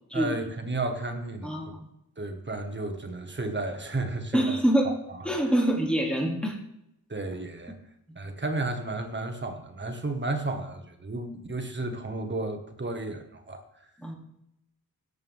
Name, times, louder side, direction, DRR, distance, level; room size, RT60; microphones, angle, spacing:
voice 1, 0.1-1.6 2.2-4.6 4.8-5.3 7.1-7.8 8.2-13.6, right 2 dB, 30° right, 5 dB, 1.7 m, -33 dB
voice 2, 1.4-1.8 4.3-4.9 5.2-6.6 14.0-14.2, right 1 dB, 5° left, -1 dB, 2.9 m, -25 dB
17.0 x 8.2 x 3.7 m, 0.79 s
cardioid pair, 80°, 36 cm